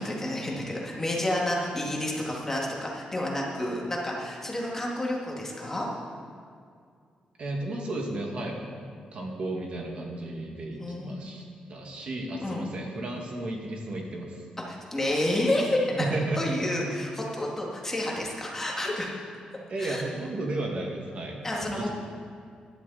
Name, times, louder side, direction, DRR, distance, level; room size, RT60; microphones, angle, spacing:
voice 1, 0.0-5.9 10.8-11.2 12.4-12.7 14.6-19.1 19.8-20.0 21.4-22.0, left 1 dB, 15° left, -3 dB, 2.5 m, -30 dB
voice 2, 7.4-11.4 11.7-14.4 16.0-16.5 19.7-21.4 21.7-21.8, right 2 dB, 50° right, 0 dB, 2.3 m, -33 dB
16.0 x 12.0 x 4.3 m, 2.3 s
cardioid pair, 120°, 2 cm